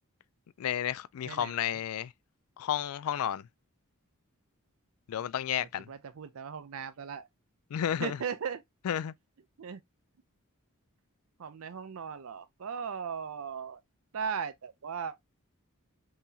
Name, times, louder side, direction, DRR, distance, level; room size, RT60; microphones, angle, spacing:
voice 1, 0.6-2.1 2.6-3.5 5.1-5.9 7.7-8.2 8.8-9.1, left 10 dB, 75° left, 0.3 m, -32 dB
voice 2, 1.2-1.8 5.6-7.3 8.0-8.6 9.6-9.8 11.4-13.8 14.1-15.2, right 6 dB, 70° right, 0.5 m, -38 dB
3.8 x 3.0 x 2.6 m
head